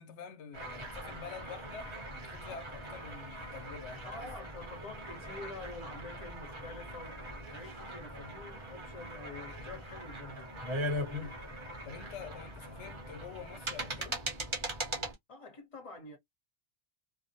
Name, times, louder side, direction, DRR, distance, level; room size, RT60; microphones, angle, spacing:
voice 1, 0.0-4.3 11.1-11.4 11.8-14.2, left 6 dB, 85° left, 0.9 m, -47 dB
sound 1, 0.5-15.1, right 1 dB, 30° right, 0.8 m, -41 dB
voice 2, 4.1-7.2 7.5-10.5 15.3-16.2, left 2 dB, 30° left, 1.0 m, -47 dB
2.3 x 2.0 x 2.7 m
omnidirectional pair, 1.2 m